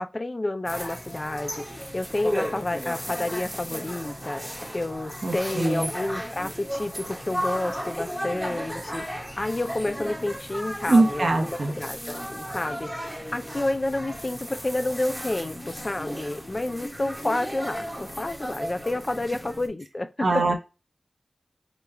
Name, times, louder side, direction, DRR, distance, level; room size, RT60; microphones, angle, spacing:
voice 1, 0.0-12.9 13.3-20.4, left 2 dB, 35° left, 0.4 m, -30 dB
sound 1, 0.7-19.7, equal, ahead, 1.2 m, -35 dB
voice 2, 5.2-5.9 10.9-11.7 20.2-20.5, right 2 dB, 65° right, 0.9 m, -22 dB
5.0 x 2.4 x 3.2 m
wide cardioid pair, 75°, 0 cm